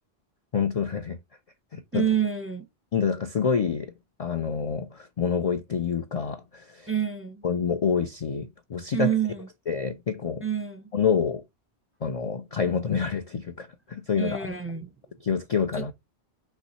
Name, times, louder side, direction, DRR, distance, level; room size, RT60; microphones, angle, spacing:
voice 1, 0.5-1.2 1.7-2.1 2.9-3.9 4.2-6.9 7.4-9.1 9.7-10.4 10.9-11.4 12.0-14.5 15.2-15.9, left 6 dB, 50° left, 0.4 m, -27 dB
voice 2, 1.9-2.7 6.9-7.4 8.9-9.4 10.4-10.9 14.2-14.9 15.8-15.9, right 8 dB, 15° right, 0.6 m, -27 dB
5.5 x 3.1 x 3.0 m
omnidirectional pair, 1.1 m